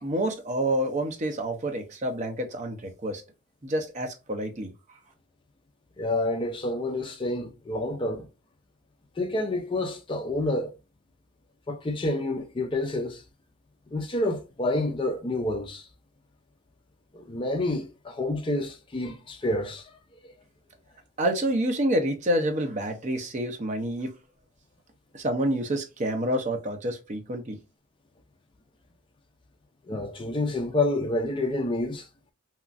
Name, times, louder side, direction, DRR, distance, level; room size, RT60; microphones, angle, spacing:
voice 1, 0.0-3.2 3.6-4.7 21.2-24.1 25.1-27.6, right 1 dB, 35° right, 0.5 m, -28 dB
voice 2, 6.0-8.3 9.2-10.7 11.7-13.2 13.9-15.9 17.1-19.9 20.2-20.3 29.9-32.1, left 2 dB, 25° left, 0.3 m, -28 dB
2.9 x 2.4 x 2.4 m
head